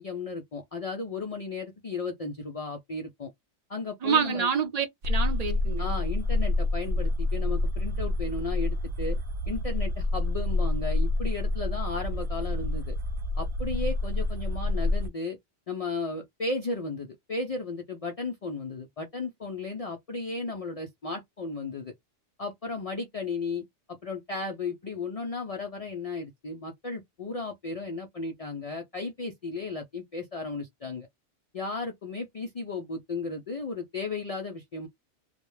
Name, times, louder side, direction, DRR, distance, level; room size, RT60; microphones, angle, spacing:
voice 1, 0.0-3.3 3.7-4.5 5.8-9.2 9.5-13.0 13.4-15.4 15.7-21.9 22.4-31.1 31.5-34.9, left 3 dB, 70° left, 0.3 m, -35 dB
voice 2, 4.0-5.9, right 6 dB, 45° right, 0.5 m, -27 dB
sound 1, 5.0-15.1, left 2 dB, 70° right, 0.8 m, -28 dB
2.3 x 2.1 x 3.1 m
omnidirectional pair, 1.2 m